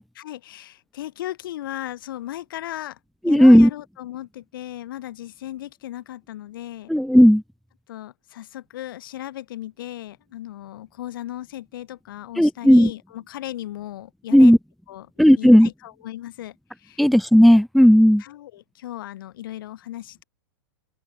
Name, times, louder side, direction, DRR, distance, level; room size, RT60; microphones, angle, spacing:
voice 1, 0.2-3.0 3.2-6.9 7.9-14.5 14.9-15.1 15.4-17.0 18.2-20.2, left 14 dB, 65° left, 7.7 m, -36 dB
voice 2, 3.2-3.7 6.9-7.4 12.4-12.9 14.3-14.6 15.2-15.7 17.0-18.2, equal, ahead, 0.9 m, -13 dB
open air
hypercardioid pair, 145°, 12 cm